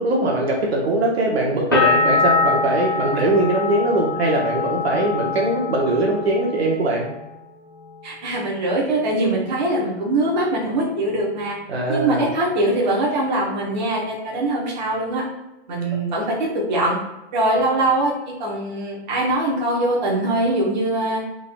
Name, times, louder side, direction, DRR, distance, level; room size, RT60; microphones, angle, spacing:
voice 1, 0.0-7.1 11.7-12.3, right 1 dB, 65° right, -2 dB, 1.2 m, -21 dB
sound 1, 1.7-7.3 7.6-8.4, left 4 dB, 20° left, 0.3 m, -24 dB
voice 2, 8.0-11.6 11.9-15.3 15.7-17.0 17.3-21.2, right 1 dB, 40° right, -4 dB, 1.1 m, -22 dB
3.8 x 3.7 x 2.3 m, 0.95 s
hypercardioid pair, 175°, 34 cm